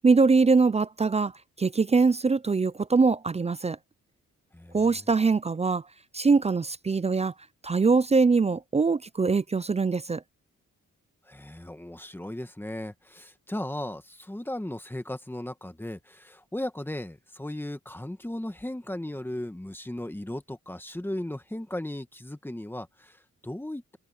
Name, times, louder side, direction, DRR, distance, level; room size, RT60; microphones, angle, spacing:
voice 1, 0.0-1.3 1.6-3.8 4.7-5.8 6.1-7.3 7.6-10.2, right 4 dB, 20° right, 0.4 m, -22 dB
voice 2, 4.5-4.8 11.2-24.0, left 1 dB, 5° left, 1.6 m, -36 dB
wide cardioid pair, 120°, 31 cm